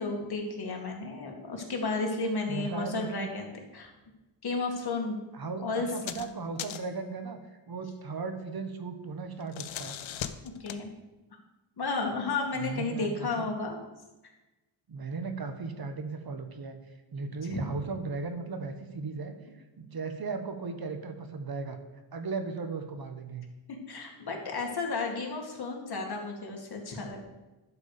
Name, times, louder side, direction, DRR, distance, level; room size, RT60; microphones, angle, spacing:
voice 1, 0.0-3.9 4.4-5.2 5.6-5.9 10.6-10.9 11.8-13.8 17.5-17.6 23.9-27.2, left 3 dB, 50° left, 1 dB, 2.3 m, -33 dB
voice 2, 2.5-3.3 5.3-7.4 7.7-10.0 12.6-13.5 14.9-16.8 17.1-19.3 19.8-21.8 22.1-23.4, right 4 dB, 45° right, 7 dB, 1.3 m, -36 dB
sound 1, 5.9-6.3 6.6-7.0 9.2-10.8, left 10 dB, 70° left, 0.8 m, -39 dB
11.0 x 4.9 x 6.8 m, 1.1 s
cardioid pair, 90°, 48 cm